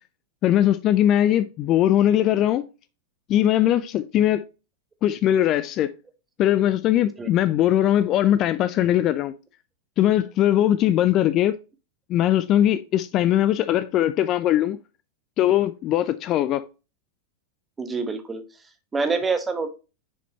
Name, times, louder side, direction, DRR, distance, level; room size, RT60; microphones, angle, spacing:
voice 1, 0.4-2.6 3.3-4.4 5.0-5.9 6.4-9.3 10.0-11.6 12.1-14.8 15.4-16.6, left 12 dB, 35° left, 0.4 m, -20 dB
voice 2, 7.0-7.3 17.8-19.7, right 4 dB, 15° right, 1.1 m, -27 dB
6.5 x 5.0 x 2.9 m
figure-of-eight pair, 90°, 0 cm